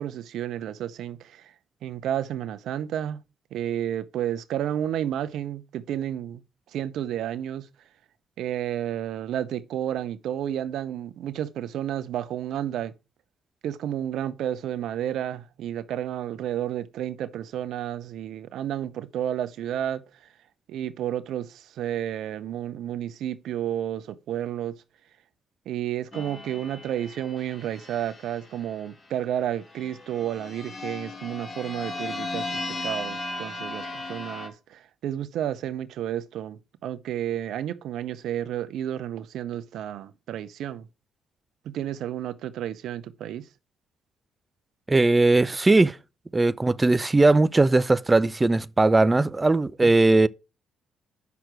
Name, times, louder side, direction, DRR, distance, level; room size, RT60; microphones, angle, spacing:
voice 1, 0.0-1.5 1.8-3.2 3.5-6.4 6.7-7.7 8.4-12.9 13.6-20.0 20.7-24.8 25.7-40.9 41.6-43.5 49.8-49.9, right 11 dB, 70° right, 0.7 m, -31 dB
sound 1, 26.1-28.9 29.7-34.5, left 2 dB, 40° left, 2.2 m, -36 dB
voice 2, 44.9-46.0 46.3-50.3, right 2 dB, 20° right, 0.5 m, -19 dB
8.4 x 6.0 x 4.6 m
hypercardioid pair, 55°, 0 cm